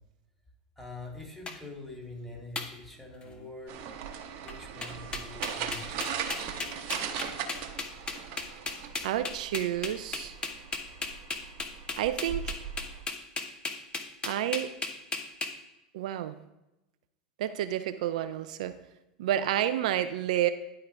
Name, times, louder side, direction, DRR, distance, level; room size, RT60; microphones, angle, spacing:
voice 1, 0.8-3.8 4.4-6.5, left 2 dB, 5° left, -2 dB, 2.5 m, -45 dB
sound 1, 1.5-1.6 2.6-2.7 3.2-3.5 4.5-4.6 4.8-15.5, left 4 dB, 20° left, 1.0 m, -35 dB
sound 2, 3.7-13.0, right 8 dB, 50° right, 1.0 m, -39 dB
voice 2, 9.0-10.4 12.0-12.6 14.2-14.7 15.9-16.4 17.4-18.7 19.2-20.5, right 11 dB, 65° right, 11 dB, 0.4 m, -30 dB
11.0 x 3.8 x 4.5 m, 0.94 s
hypercardioid pair, 90°, 4 cm